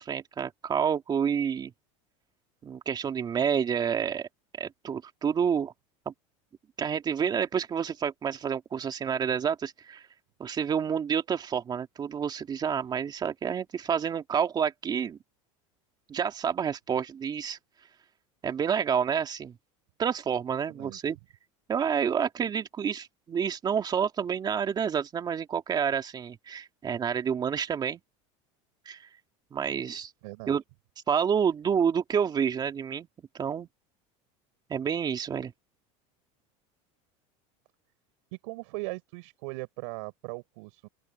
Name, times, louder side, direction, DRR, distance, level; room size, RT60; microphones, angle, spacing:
voice 1, 0.0-1.7 2.6-4.3 4.6-5.7 6.1-6.2 6.8-10.0 10.4-15.2 16.1-17.6 18.4-19.6 20.0-21.2 21.7-28.0 28.9-29.1 29.5-30.1 30.5-30.6 31.1-33.1 33.3-33.7 34.7-35.5, right 7 dB, 25° right, 2.4 m, -29 dB
voice 2, 20.7-21.0 30.2-30.6 38.3-40.9, right 27 dB, 75° right, 6.8 m, -39 dB
open air
supercardioid pair, 135°, 16 cm